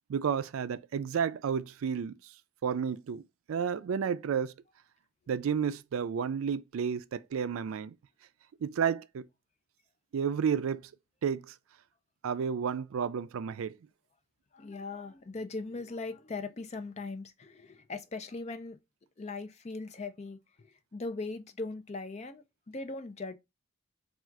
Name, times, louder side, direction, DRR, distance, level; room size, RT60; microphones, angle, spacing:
voice 1, 0.1-2.1 2.6-3.2 3.5-4.5 5.3-7.9 8.6-9.2 10.1-10.8 11.2-11.5 12.2-13.7, right 7 dB, 80° right, 0.4 m, -31 dB
voice 2, 14.5-18.8 19.2-23.3, left 3 dB, 30° left, 0.4 m, -40 dB
3.6 x 2.4 x 4.4 m
head